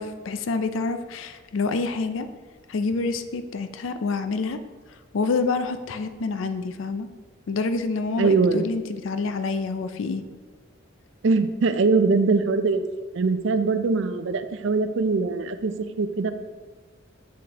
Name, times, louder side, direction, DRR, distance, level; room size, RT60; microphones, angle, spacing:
voice 1, 0.0-2.3 2.7-4.6 4.9-7.1 7.5-10.2, left 4 dB, 75° left, 9 dB, 0.4 m, -27 dB
voice 2, 8.2-8.7 11.2-12.8 13.1-16.3, right 4 dB, 65° right, 10 dB, 0.4 m, -22 dB
7.1 x 6.1 x 2.9 m, 1.3 s
head